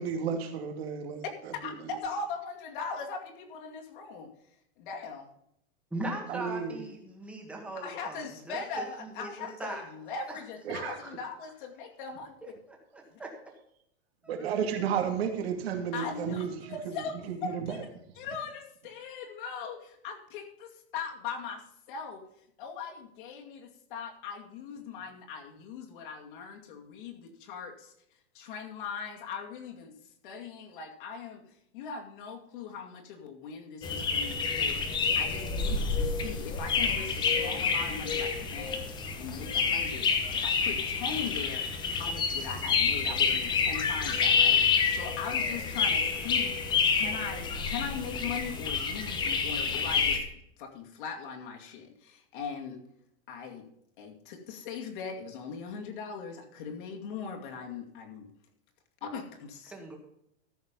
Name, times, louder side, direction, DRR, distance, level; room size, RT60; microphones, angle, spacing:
voice 1, 0.0-2.0 6.3-6.8 10.7-11.0 14.3-17.8, right 7 dB, 70° right, 4 dB, 2.5 m, -33 dB
voice 2, 1.6-4.3 4.8-5.3 7.8-12.3 13.1-13.2 15.9-17.9 18.2-21.6 21.9-22.2 22.6-27.9 28.3-29.9 30.2-41.6 41.9-46.6 46.9-50.2 50.6-52.8 53.3-53.6 54.0-58.3 59.0-59.7, left 5 dB, 50° left, 2 dB, 2.4 m, -40 dB
voice 3, 5.9-9.8 10.3-10.4 11.0-11.1 12.4-12.5 12.9-13.3 14.2-14.5 59.7-60.0, right 2 dB, 5° right, 1 dB, 1.7 m, -40 dB
sound 1, 33.8-50.2, left 5 dB, 15° left, 0.9 m, -28 dB
14.0 x 6.6 x 5.3 m, 0.75 s
supercardioid pair, 175°, 32 cm